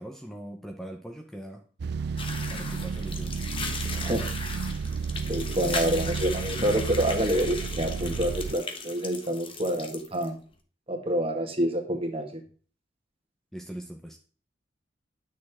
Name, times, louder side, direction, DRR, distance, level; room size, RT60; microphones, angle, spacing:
voice 1, 0.0-1.6 2.5-3.4 13.5-14.2, right 1 dB, ahead, 2 dB, 0.8 m, -40 dB
sound 1, 1.8-8.5, right 5 dB, 60° right, 0.4 m, -32 dB
sound 2, 2.2-10.3, left 4 dB, 30° left, 1.2 m, -37 dB
voice 2, 3.9-4.3 5.3-10.3 10.9-12.4, right 1 dB, 30° right, 3 dB, 1.9 m, -27 dB
10.5 x 6.5 x 3.7 m, 0.41 s
head